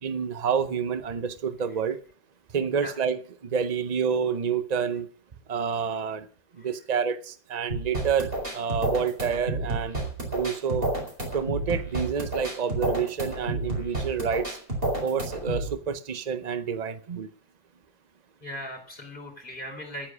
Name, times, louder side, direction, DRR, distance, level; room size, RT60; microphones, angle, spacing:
voice 1, 0.0-2.0 2.5-5.1 5.5-6.3 6.6-10.0 10.3-10.9 11.3-14.6 15.0-17.3, right 6 dB, 65° right, 0.4 m, -28 dB
sound 1, 7.7-15.7, right 2 dB, 30° right, 4.5 m, -30 dB
voice 2, 18.4-20.1, equal, 25° left, 4.0 m, -38 dB
12.0 x 9.8 x 6.2 m
omnidirectional pair, 1.9 m